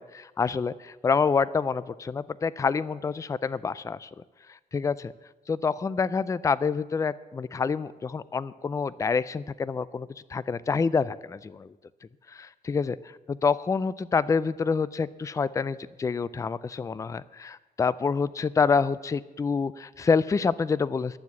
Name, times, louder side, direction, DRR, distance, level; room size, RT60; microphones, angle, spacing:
voice 1, 0.0-4.1 4.5-5.1 5.5-11.7 12.3-13.0 13.3-21.2, left 5 dB, 20° left, 18 dB, 0.3 m, -27 dB
11.0 x 7.4 x 8.1 m, 1.1 s
cardioid pair, 115°, 16 cm